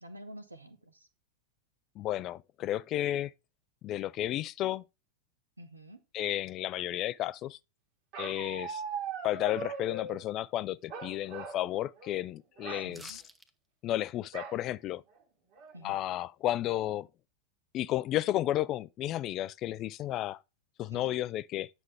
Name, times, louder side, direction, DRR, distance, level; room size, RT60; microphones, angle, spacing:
voice 1, 0.0-1.1 5.6-6.0 12.7-13.2 15.7-16.0 20.9-21.2, right 1 dB, 80° right, 1.2 m, -48 dB
voice 2, 2.0-3.3 3.8-4.8 6.1-7.6 8.2-8.8 9.2-13.2 13.8-15.0 15.8-17.1 17.7-20.4 20.8-21.7, left 13 dB, 35° left, 0.4 m, -32 dB
Bark, 8.1-10.2 10.9-11.6 12.0-12.2 12.6-12.9 14.3-14.6 15.2-15.3 15.6-16.0, right 4 dB, 45° right, 1.9 m, -40 dB
sound 1, 12.9-13.5 13.8-13.9, right 1 dB, 5° right, 0.9 m, -50 dB
9.5 x 6.1 x 3.4 m
figure-of-eight pair, 90°, 0 cm